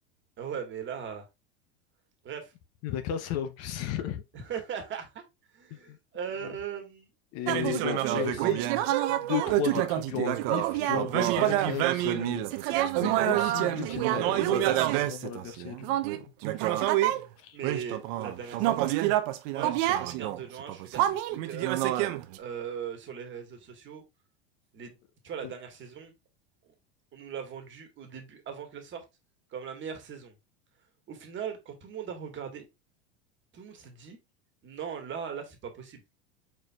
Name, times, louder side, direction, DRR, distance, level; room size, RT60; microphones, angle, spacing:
voice 1, 0.4-1.3 2.2-2.5 4.3-5.2 5.5-7.1 13.6-14.3 17.5-18.9 19.5-21.7 22.3-24.0 24.7-25.0 25.2-26.1 26.7-26.8 27.1-29.0 29.5-30.3 31.1-32.7 33.5-34.2 34.6-36.0, right 7 dB, 35° right, 1.6 m, -39 dB
voice 2, 2.8-4.2 5.7-6.0 6.4-6.5 7.3-8.6 9.2-16.9 17.4-17.6 25.4-25.5, left 10 dB, 50° left, 0.8 m, -35 dB
sound 1, 7.5-17.2 17.6-22.4, right 14 dB, 60° right, 0.7 m, -27 dB
4.7 x 4.5 x 2.3 m
hypercardioid pair, 105°, 34 cm